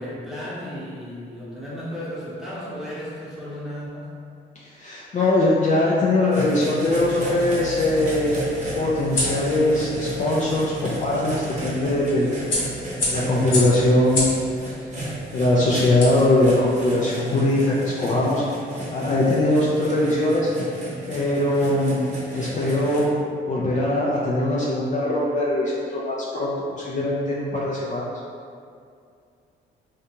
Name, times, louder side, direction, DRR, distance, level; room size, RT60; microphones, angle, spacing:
voice 1, 0.0-4.1, equal, ahead, -9 dB, 0.9 m, -34 dB
voice 2, 4.8-8.3 8.8-12.3 13.1-14.3 15.3-18.4 18.9-20.5 21.1-22.0 22.3-23.2 23.4-28.1, left 1 dB, 40° left, -5 dB, 0.4 m, -21 dB
sound 1, 6.3-23.0, right 1 dB, 35° right, 0.8 m, -34 dB
sound 2, 6.9-16.8, left 2 dB, 75° left, 1.1 m, -32 dB
2.6 x 2.2 x 2.8 m, 2.3 s
cardioid pair, 90°, 20 cm